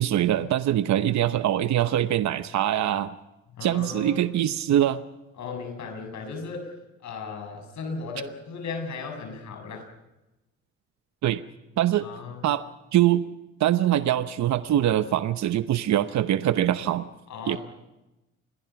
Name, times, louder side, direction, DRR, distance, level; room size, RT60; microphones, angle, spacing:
voice 1, 0.0-3.1 3.6-5.0 11.2-11.4 11.8-12.1 12.4-12.6 12.9-13.2 13.6-17.1 17.5-17.6, right 12 dB, 65° right, 11 dB, 0.9 m, -23 dB
voice 2, 3.5-4.2 5.3-6.8 7.0-9.9 12.0-12.5 17.3-17.6, left 4 dB, 70° left, 5 dB, 7.3 m, -36 dB
27.5 x 22.0 x 5.9 m, 0.99 s
cardioid pair, 90°, 30 cm